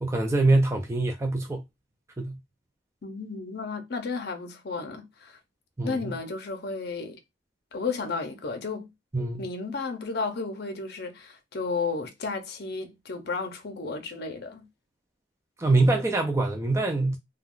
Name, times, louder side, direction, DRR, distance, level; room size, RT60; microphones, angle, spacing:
voice 1, 0.0-1.6 2.2-2.4 5.8-6.1 9.1-9.4 15.6-17.2, right 2 dB, 15° right, 0.4 m, -24 dB
voice 2, 3.0-5.4 5.8-7.2 7.7-8.9 9.4-14.6, left 4 dB, 55° left, 0.6 m, -33 dB
2.4 x 2.2 x 3.6 m
head